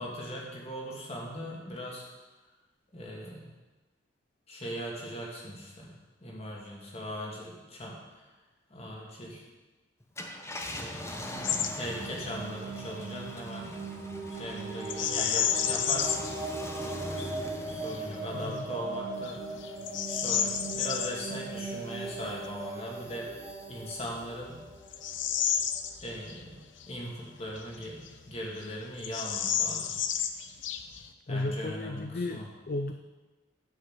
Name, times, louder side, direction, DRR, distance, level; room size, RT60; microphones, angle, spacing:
voice 1, 0.0-2.0 2.9-3.5 4.5-5.9 6.2-8.3 8.7-9.4 10.7-13.8 14.3-16.3 16.8-17.3 17.7-19.7 20.1-23.3 23.7-24.6 26.0-26.6 26.9-29.9 31.3-32.5, equal, 35° left, -3 dB, 2.4 m, -39 dB
Car, 10.0-20.8 21.3-21.4 23.5-23.7, left 1 dB, 15° left, 0.9 m, -43 dB
sound 1, 11.1-25.8, right 3 dB, 20° right, 2.2 m, -39 dB
Bird vocalization bird call bird song, 11.4-11.7 12.0-12.3 14.8-16.3 16.9-17.0 17.6-18.0 18.6-18.7 19.2-21.1 23.2-23.3 24.0-26.4 26.8-26.9 27.6-28.4 28.6-28.7 29.0-31.1, left 9 dB, 80° left, 0.7 m, -31 dB
voice 2, 18.3-18.7 31.3-32.9, left 2 dB, 50° left, 7 dB, 0.5 m, -34 dB
9.6 x 5.8 x 7.5 m, 1.2 s
head